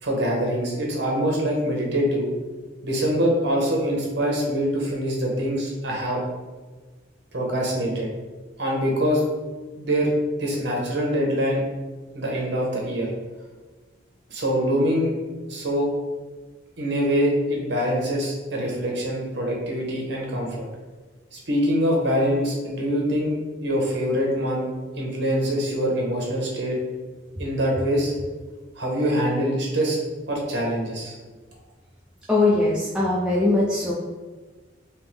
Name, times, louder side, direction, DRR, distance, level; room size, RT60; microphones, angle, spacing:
voice 1, 0.0-2.3 2.8-6.2 7.3-8.1 8.6-9.2 9.8-10.1 10.4-11.6 12.1-13.1 14.3-15.1 15.5-15.9 16.8-20.7 21.3-24.7 25.0-26.8 27.4-28.1 28.8-30.0 30.3-31.1, equal, 60° right, -2 dB, 0.9 m, -24 dB
voice 2, 32.3-33.9, left 2 dB, 5° right, -6 dB, 0.3 m, -21 dB
3.5 x 2.9 x 3.2 m, 1.3 s
head